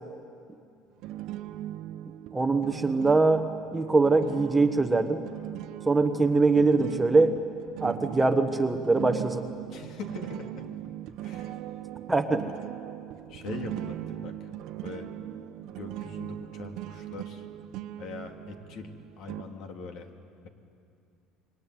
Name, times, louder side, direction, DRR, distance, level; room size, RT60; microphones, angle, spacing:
sound 1, 1.0-19.4, right 13 dB, 65° right, 1.1 m, -39 dB
voice 1, 2.3-5.2 5.9-7.4 7.8-9.5 12.1-12.4, right 3 dB, 10° right, 6 dB, 1.2 m, -23 dB
voice 2, 9.7-10.6 11.2-11.5 13.3-14.3 14.8-15.1 15.8-17.5 18.0-20.1, left 4 dB, 55° left, 4 dB, 2.7 m, -42 dB
27.0 x 23.0 x 9.5 m, 2.5 s
cardioid pair, 140°, 0 cm